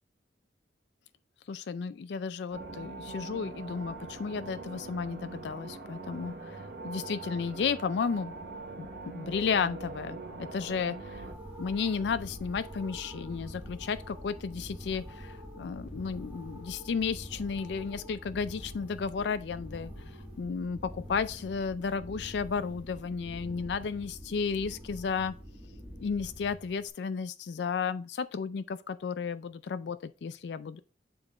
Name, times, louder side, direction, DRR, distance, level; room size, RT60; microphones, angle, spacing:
voice 1, 1.5-8.3 8.8-8.9 9.1-11.3 11.6-19.9 20.4-25.3 26.0-30.8, left 5 dB, 70° left, 0.4 m, -33 dB
sound 1, 2.5-11.3, right 3 dB, 60° right, 1.2 m, -42 dB
sound 2, 10.9-26.9, equal, 10° right, 1.7 m, -45 dB
6.9 x 3.7 x 4.1 m
head